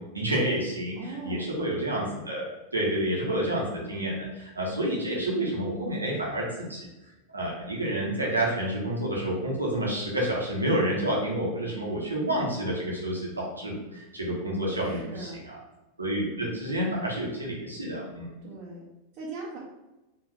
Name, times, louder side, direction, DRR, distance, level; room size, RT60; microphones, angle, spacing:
voice 1, 0.1-6.4 6.7-6.9 7.3-15.6 16.0-18.3, right 1 dB, 80° right, -4 dB, 1.3 m, -29 dB
voice 2, 1.0-1.5 14.7-15.4 16.3-16.5 18.4-18.9 19.2-19.6, right 3 dB, 40° right, -6 dB, 1.1 m, -40 dB
4.6 x 3.0 x 3.4 m, 1.0 s
figure-of-eight pair, 90°, 0 cm